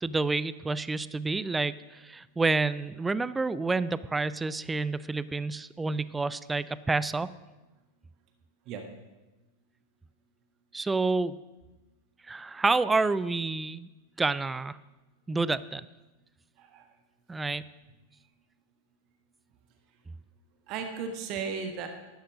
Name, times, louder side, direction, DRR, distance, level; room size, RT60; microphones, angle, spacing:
voice 1, 0.0-7.3 10.7-11.4 12.3-13.9 14.2-14.8 15.3-15.9 17.3-17.6, right 3 dB, 10° right, 18 dB, 0.4 m, -29 dB
voice 2, 20.7-21.9, right 6 dB, 40° right, 5 dB, 1.4 m, -35 dB
12.0 x 10.5 x 6.3 m, 1.1 s
figure-of-eight pair, 90°, 0 cm